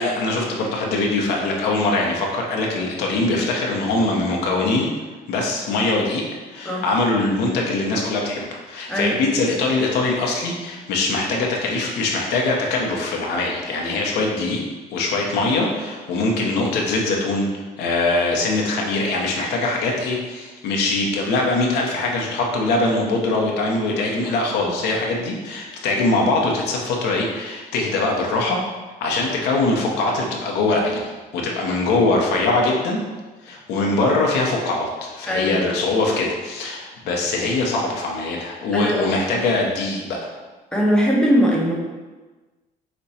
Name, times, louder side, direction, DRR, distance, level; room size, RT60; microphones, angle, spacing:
voice 1, 0.0-4.9 5.3-14.6 14.9-17.5 17.8-28.6 29.0-33.0 33.4-40.3, left 2 dB, 85° left, -1 dB, 0.8 m, -22 dB
voice 2, 35.3-35.6 38.7-39.1 40.7-41.7, equal, 5° left, -3 dB, 1.0 m, -20 dB
5.0 x 2.2 x 4.2 m, 1.2 s
cardioid pair, 110°, 17 cm